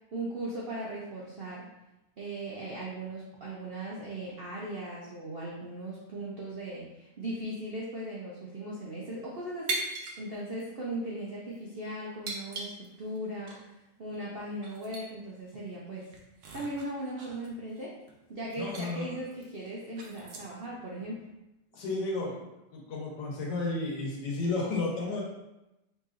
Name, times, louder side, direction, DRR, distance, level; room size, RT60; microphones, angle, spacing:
voice 1, 0.1-1.7 2.2-9.8 10.2-13.5 14.0-16.0 16.5-17.9 18.3-21.3, right 1 dB, 80° right, -5 dB, 0.5 m, -38 dB
sound 1, 9.7-10.2 10.5-10.6 11.4-11.6 12.2-13.2 13.5-13.6 14.1-14.2 14.6-15.1 15.5-15.6 16.0-18.2 18.5-18.9 19.3-20.6, right 2 dB, 60° right, 0.8 m, -39 dB
voice 2, 18.6-19.1 21.7-22.4 22.7-25.2, left 2 dB, 75° left, -3 dB, 1.6 m, -32 dB
5.3 x 2.9 x 2.5 m, 0.95 s
omnidirectional pair, 1.9 m